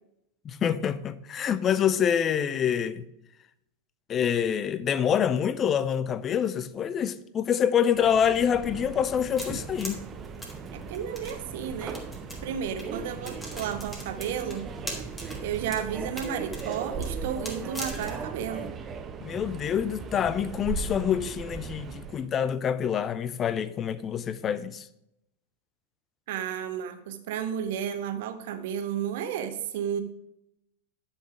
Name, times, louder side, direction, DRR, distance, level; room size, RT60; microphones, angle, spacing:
voice 1, 0.4-3.0 4.1-10.0 19.2-24.9, left 8 dB, 25° left, 0.5 m, -26 dB
Subway metro underground, 7.9-22.3, right 5 dB, 25° right, 0.8 m, -38 dB
sound 1, 9.4-11.3 11.9-12.4 12.8-12.9 13.2-15.4 15.7-15.9 16.2-18.2, equal, 10° left, 2.1 m, -39 dB
voice 2, 10.7-12.0 12.4-14.7 15.4-18.7 26.3-30.0, right 8 dB, 50° right, 1.0 m, -33 dB
10.0 x 5.8 x 4.9 m
figure-of-eight pair, 90°, 0 cm